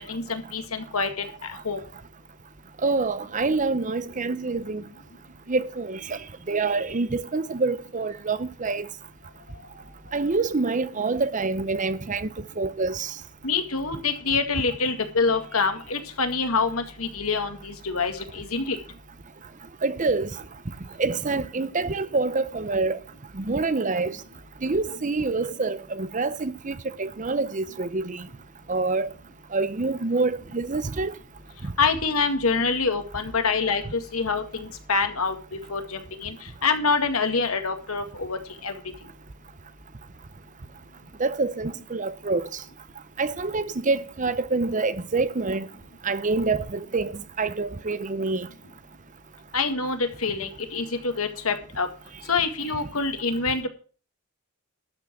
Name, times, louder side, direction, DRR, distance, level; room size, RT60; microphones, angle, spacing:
voice 1, 0.1-1.3 1.6-1.8 13.4-18.8 31.8-35.4 35.7-36.3 36.6-38.8 49.5-51.9 52.3-53.7, left 4 dB, 85° left, 2.0 m, -26 dB
voice 2, 2.8-4.8 5.5-6.2 6.5-8.9 10.1-12.3 12.6-13.1 19.8-20.3 21.0-23.0 23.3-24.2 24.6-28.3 28.7-29.1 29.5-31.1 31.6-31.7 41.2-42.5 43.2-45.7 46.0-48.5, right 3 dB, 35° right, 0.7 m, -26 dB
12.5 x 6.0 x 7.6 m
head